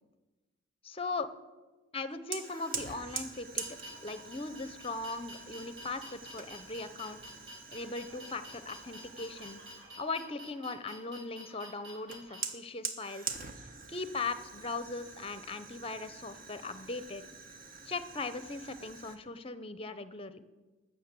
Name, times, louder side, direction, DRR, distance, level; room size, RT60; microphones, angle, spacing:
voice 1, 0.8-1.3 1.9-7.2 7.7-9.6 10.0-13.4 13.9-17.2 17.8-20.4, left 3 dB, 30° left, 12 dB, 0.7 m, -39 dB
Fire, 2.3-10.0 12.1-19.2, right 5 dB, 45° right, 1.2 m, -44 dB
sound 1, 2.4-12.4, equal, 65° right, 5.0 m, -50 dB
13.0 x 6.6 x 8.1 m, 1.2 s
head